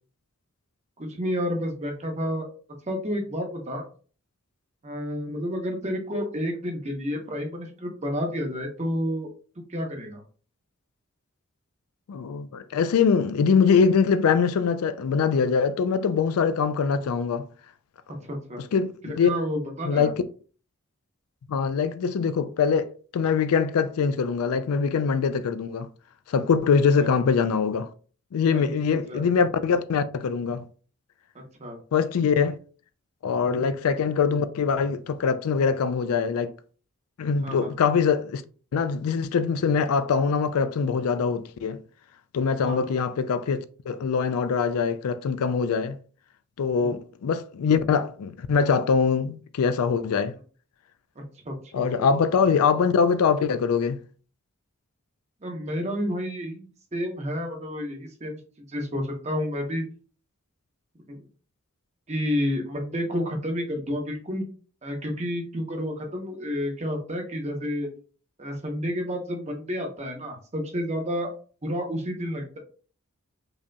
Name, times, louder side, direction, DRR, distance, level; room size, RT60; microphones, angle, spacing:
voice 1, 1.0-2.5 2.9-3.8 4.8-9.3 9.7-10.2 18.2-18.6 19.0-20.1 27.0-27.1 28.5-28.6 29.1-29.2 31.3-31.8 33.4-33.6 37.4-37.7 42.6-42.8 46.8-46.9 51.4-51.5 55.4-58.4 58.7-59.8 61.1-61.2 62.1-64.4 64.8-67.9 68.4-71.3 71.6-72.6, equal, 30° right, 0.8 m, -30 dB
voice 2, 12.1-17.5 18.7-19.3 19.8-20.1 21.5-25.9 26.3-27.9 28.3-30.7 31.9-32.6 33.2-36.5 37.2-38.4 38.7-41.8 42.3-46.0 46.6-50.4 51.7-54.0, left 6 dB, 80° left, 0.4 m, -23 dB
5.0 x 2.8 x 2.2 m
head